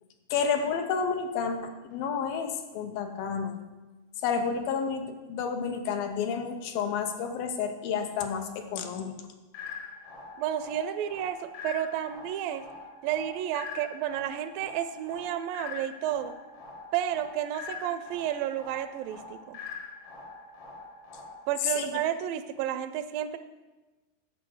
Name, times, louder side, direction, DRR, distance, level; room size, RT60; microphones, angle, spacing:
voice 1, 0.3-3.6 4.2-9.2 21.6-21.9, left 6 dB, 80° left, 6 dB, 2.7 m, -30 dB
sound 1, 9.5-21.5, left 4 dB, 60° left, 1.7 m, -44 dB
voice 2, 10.4-12.7 13.0-16.3 16.9-19.6 21.5-23.4, right 11 dB, 80° right, 11 dB, 2.1 m, -31 dB
9.8 x 7.4 x 6.3 m, 1.2 s
omnidirectional pair, 4.2 m